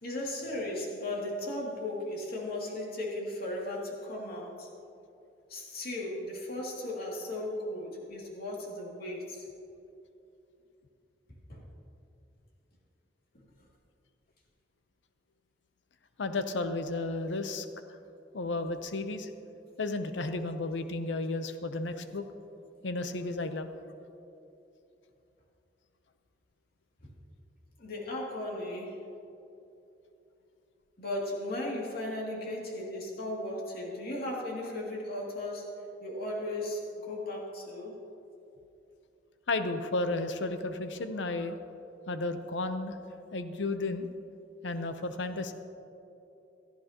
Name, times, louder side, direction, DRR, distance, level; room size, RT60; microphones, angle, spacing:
voice 1, 0.0-4.7 5.5-9.5 11.5-11.6 27.8-29.0 31.0-35.7 36.0-37.9, left 1 dB, 55° left, -3 dB, 2.6 m, -36 dB
voice 2, 16.2-17.7 18.3-19.3 19.8-22.2 22.8-23.9 39.5-41.6 42.1-43.0 43.3-44.1 44.6-45.5, left 2 dB, 90° left, 9 dB, 0.7 m, -33 dB
17.5 x 13.0 x 2.9 m, 2.8 s
head